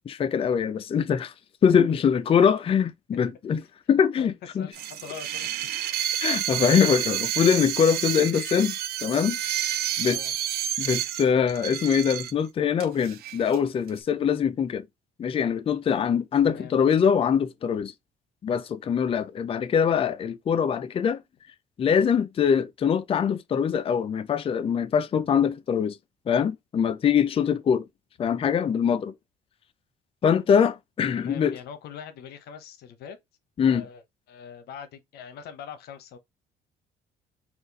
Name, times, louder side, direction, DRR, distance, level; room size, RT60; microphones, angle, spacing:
voice 1, 0.1-1.3 1.6-3.6 3.9-4.7 6.2-8.8 9.0-9.4 9.6-10.2 10.8-14.8 15.2-17.9 18.4-21.2 21.8-26.0 26.3-27.8 28.2-29.1 30.2-31.6 33.6-33.8, left 7 dB, 35° left, 0.5 m, -23 dB
voice 2, 4.6-5.5 10.0-10.3 16.4-16.8 31.1-33.2 33.6-34.0 34.3-36.2, left 7 dB, 70° left, 0.9 m, -42 dB
sound 1, 4.7-12.3 12.8-13.6 13.9-14.0, right 12 dB, 70° right, 0.6 m, -30 dB
4.3 x 2.5 x 4.0 m
cardioid pair, 110°, 17 cm